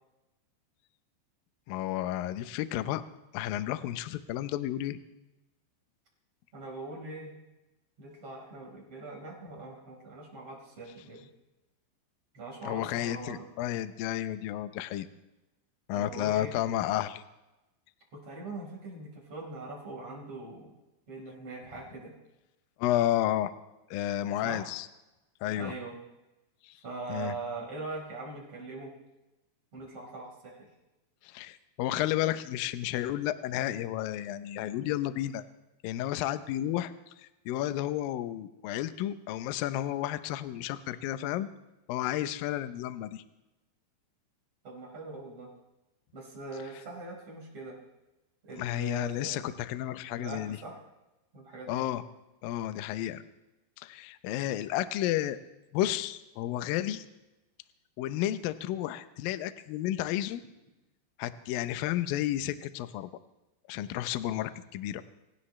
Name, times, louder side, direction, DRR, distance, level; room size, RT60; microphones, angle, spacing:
voice 1, 1.7-3.0 3.3-5.0 12.6-15.1 15.9-17.2 22.8-23.5 23.9-24.9 25.4-25.7 26.6-26.7 27.1-27.4 31.2-35.4 35.8-36.9 37.2-41.5 41.9-43.2 48.6-50.6 51.7-52.0 52.4-53.2 53.8-55.4 55.7-57.1 58.0-60.4 61.2-63.1 63.7-65.0, left 13 dB, 85° left, 12 dB, 2.0 m, -32 dB
voice 2, 6.5-7.3 8.0-11.3 12.3-13.5 15.9-16.6 18.1-20.7 21.1-22.1 24.4-24.7 25.6-26.0 26.8-28.9 29.7-30.7 44.6-45.5 46.1-47.8 48.4-49.4 50.2-50.8 51.3-51.8, right 3 dB, 35° right, -2 dB, 5.2 m, -41 dB
26.5 x 16.0 x 3.2 m, 1.0 s
omnidirectional pair, 5.2 m